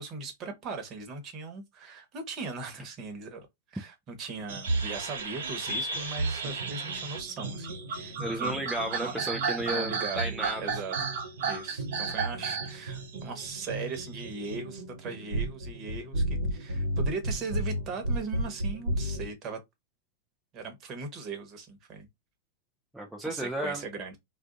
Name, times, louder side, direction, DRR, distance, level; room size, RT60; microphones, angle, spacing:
voice 1, 0.0-8.6 9.0-9.2 9.7-10.3 10.6-10.9 11.4-19.6 20.5-22.1 23.2-24.2, right 4 dB, 35° right, 1.1 m, -39 dB
sound 1, 4.5-14.5, right 4 dB, 65° right, 0.9 m, -34 dB
sound 2, 4.6-19.3, right 1 dB, 85° right, 1.2 m, -35 dB
voice 2, 8.2-10.7 22.9-23.8, right 1 dB, 5° right, 0.5 m, -33 dB
2.4 x 2.3 x 3.8 m
hypercardioid pair, 120°, 0 cm